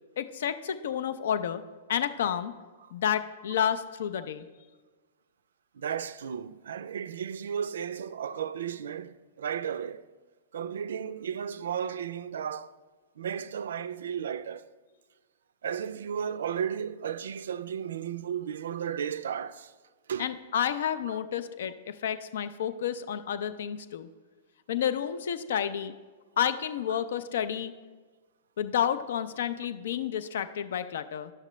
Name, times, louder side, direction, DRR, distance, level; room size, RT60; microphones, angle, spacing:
voice 1, 0.2-1.6 1.9-2.5 2.9-4.4 20.2-24.1 24.7-25.9 26.4-27.7 28.6-31.3, left 9 dB, 70° left, 0.4 m, -30 dB
voice 2, 5.8-10.1 10.5-12.7 13.2-14.7 15.6-19.7 20.1-20.3, right 8 dB, 75° right, 0.3 m, -34 dB
10.5 x 6.5 x 3.1 m
hypercardioid pair, 120°, 0 cm